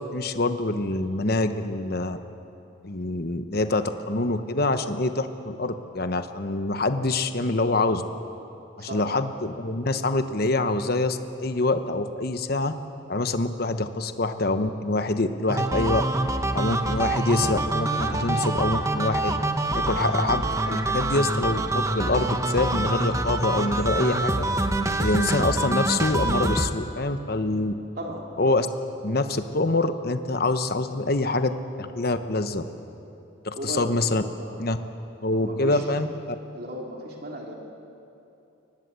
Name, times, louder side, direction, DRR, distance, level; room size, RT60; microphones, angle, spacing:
voice 1, 0.0-2.2 2.8-8.0 8.8-12.7 13.1-16.0 16.5-19.4 19.7-24.5 25.0-27.7 28.4-28.7 29.0-32.6 33.4-34.2 34.6-34.8 35.2-36.1, left 2 dB, 50° left, 9 dB, 1.0 m, -25 dB
sound 1, 15.5-26.7, right 2 dB, 15° right, 0.9 m, -26 dB
voice 2, 28.0-28.3 33.5-34.6 35.3-35.8 36.5-37.5, right 1 dB, 50° right, -1 dB, 3.1 m, -36 dB
23.0 x 19.0 x 8.2 m, 2.8 s
head